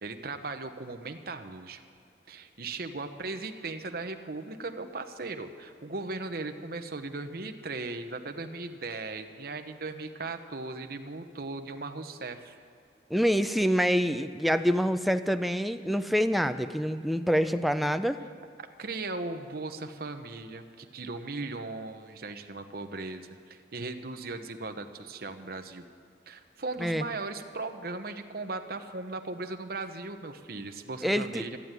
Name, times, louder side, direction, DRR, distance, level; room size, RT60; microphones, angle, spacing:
voice 1, 0.0-1.8 2.3-12.6 18.6-25.8 26.3-31.6, right 3 dB, 55° right, 6 dB, 0.9 m, -38 dB
voice 2, 13.1-18.2 26.8-27.0 31.0-31.5, equal, ahead, 9 dB, 0.4 m, -26 dB
14.0 x 9.6 x 9.0 m, 2.5 s
head